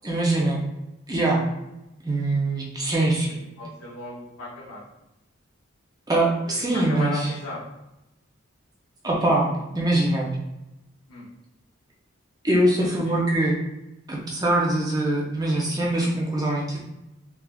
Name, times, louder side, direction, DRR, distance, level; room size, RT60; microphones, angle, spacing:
voice 1, 0.0-0.6 1.1-1.4 2.0-3.3 6.1-7.3 9.0-10.3 12.4-13.5 14.1-16.8, right 1 dB, 20° right, -3 dB, 0.5 m, -23 dB
voice 2, 3.3-4.8 6.5-7.6 11.1-11.3 12.8-13.1 16.0-16.2, left 2 dB, 80° left, -8 dB, 0.8 m, -37 dB
3.4 x 2.4 x 2.3 m, 0.91 s
head